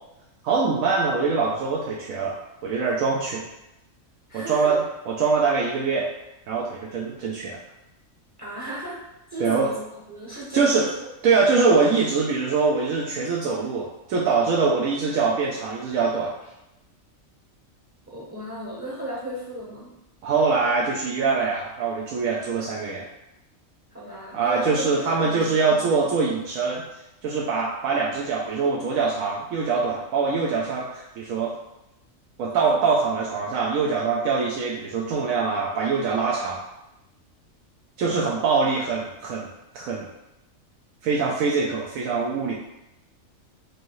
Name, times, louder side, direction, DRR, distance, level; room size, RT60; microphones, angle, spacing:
voice 1, 0.4-2.4 2.6-3.5 4.3-6.1 6.5-7.6 9.4-9.7 10.5-10.8 11.2-16.4 20.2-23.1 24.3-26.8 27.2-31.6 32.4-36.6 38.0-39.5 39.7-40.1 41.0-42.5, right 4 dB, 85° right, -4 dB, 1.0 m, -23 dB
voice 2, 4.3-4.7 8.4-9.0 9.3-11.1 18.1-19.9 23.9-25.8 38.0-38.4, right 1 dB, 15° right, -6 dB, 0.7 m, -34 dB
4.7 x 2.7 x 3.0 m, 0.91 s
omnidirectional pair, 1.4 m